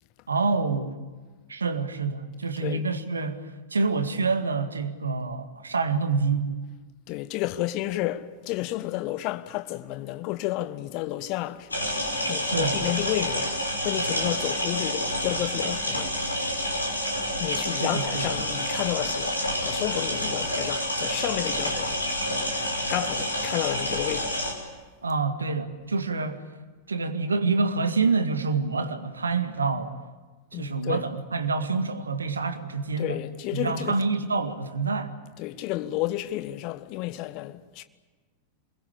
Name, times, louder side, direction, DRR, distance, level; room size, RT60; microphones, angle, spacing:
voice 1, 0.3-1.0 1.5-6.6 12.4-12.8 17.7-18.2 25.0-26.4 26.9-29.9 30.5-33.2 33.5-35.1, right 4 dB, 75° right, 2.0 m, -27 dB
voice 2, 7.1-11.7 12.3-13.5 13.8-16.2 17.4-19.3 19.6-22.0 22.9-24.4 30.5-31.0 33.0-34.0 35.4-37.8, left 16 dB, 40° left, 1.4 m, -31 dB
sound 1, 11.7-24.5, equal, 80° left, 5.7 m, -28 dB
27.5 x 22.0 x 8.7 m
figure-of-eight pair, 90°, 0 cm